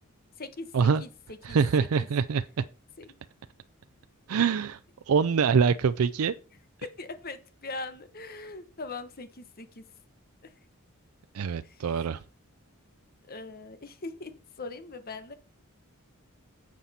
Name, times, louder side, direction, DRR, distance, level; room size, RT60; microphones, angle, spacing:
voice 1, 0.4-2.1 3.0-3.1 6.8-9.8 11.6-11.8 13.3-15.3, left 3 dB, 45° left, 1.1 m, -41 dB
voice 2, 1.4-2.6 4.3-4.8 5.1-6.3 11.3-12.2, right 6 dB, 80° right, 0.4 m, -24 dB
11.0 x 7.4 x 4.2 m
head